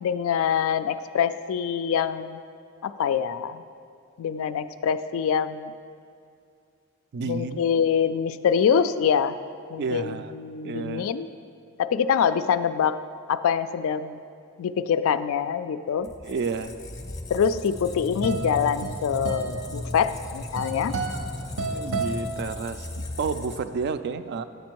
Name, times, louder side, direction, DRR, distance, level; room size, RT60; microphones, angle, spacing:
voice 1, 0.0-2.4 2.8-3.6 4.2-5.7 7.2-9.4 9.7-11.3 11.8-13.0 13.3-14.2 14.6-16.1 17.3-20.9, left 7 dB, 75° left, 12 dB, 0.3 m, -25 dB
voice 2, 7.1-7.6 9.8-10.3 10.6-11.1 16.0-16.7 21.7-24.4, right 5 dB, 50° right, 11 dB, 0.3 m, -31 dB
Squeak, 16.0-23.9, left 2 dB, 20° left, 0.5 m, -37 dB
sound 1, 17.6-23.1, right 3 dB, 70° right, 0.7 m, -33 dB
9.2 x 5.1 x 4.6 m, 2.3 s
head